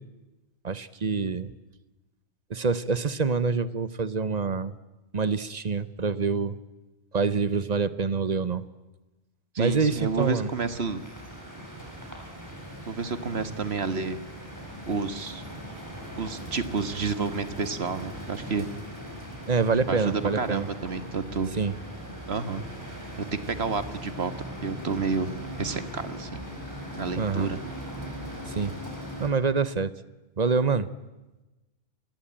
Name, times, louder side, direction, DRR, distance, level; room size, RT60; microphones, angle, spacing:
voice 1, 0.6-1.5 2.5-4.7 5.1-6.6 7.1-8.6 9.6-10.5 19.5-20.7 21.6-21.7 27.1-27.5 28.5-28.7 29.2-29.9 30.4-30.9, right 5 dB, 40° right, 15 dB, 1.1 m, -26 dB
voice 2, 9.5-11.0 12.9-14.2 14.9-15.4 16.2-18.7 19.9-21.5 22.3-22.6 23.2-24.3 24.6-26.4 27.0-27.6, right 4 dB, 65° right, 11 dB, 1.7 m, -30 dB
sound 1, 9.7-29.3, equal, 15° right, 5.7 m, -40 dB
28.0 x 22.0 x 8.9 m, 1.1 s
omnidirectional pair, 1.2 m